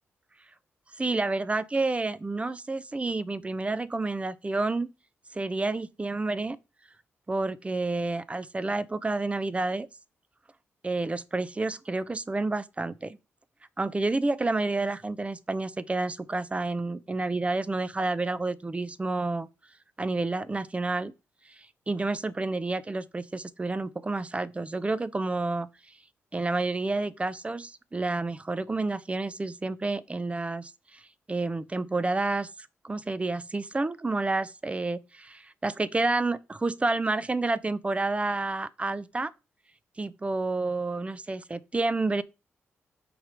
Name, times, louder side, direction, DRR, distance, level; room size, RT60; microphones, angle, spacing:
voice 1, 1.0-4.9 5.3-6.6 7.3-9.9 10.8-13.2 13.8-19.5 20.0-21.1 21.5-25.7 26.3-31.0 31.3-39.3 40.0-42.2, right 3 dB, 25° right, 0.5 m, -29 dB
6.0 x 3.3 x 5.0 m
cardioid pair, 60°, 5 cm